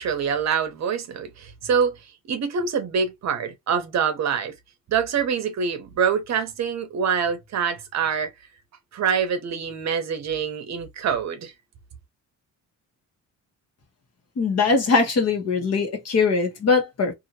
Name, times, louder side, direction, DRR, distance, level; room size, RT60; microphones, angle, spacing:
voice 1, 0.0-4.5 4.9-8.3 8.9-11.5, right 6 dB, 50° right, 0.8 m, -25 dB
voice 2, 14.4-17.1, left 4 dB, 45° left, 1.1 m, -21 dB
2.8 x 2.6 x 2.8 m
cardioid pair, 155°, 34 cm